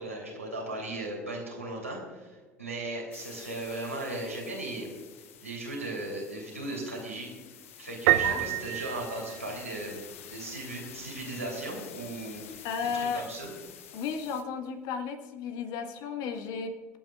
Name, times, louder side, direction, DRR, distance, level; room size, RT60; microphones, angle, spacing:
voice 1, 0.0-4.9 5.4-7.3 7.8-10.0 10.3-12.4 13.1-13.5, right 2 dB, 90° right, -3 dB, 3.3 m, -37 dB
sound 1, 3.1-14.4, left 9 dB, 70° left, 0.9 m, -49 dB
Piano, 8.1-9.9, right 15 dB, 65° right, 0.6 m, -27 dB
voice 2, 8.2-8.6 12.6-13.3 13.9-17.0, left 6 dB, 55° left, 6 dB, 1.6 m, -34 dB
26.0 x 9.2 x 2.4 m, 1.4 s
figure-of-eight pair, 65°, 8 cm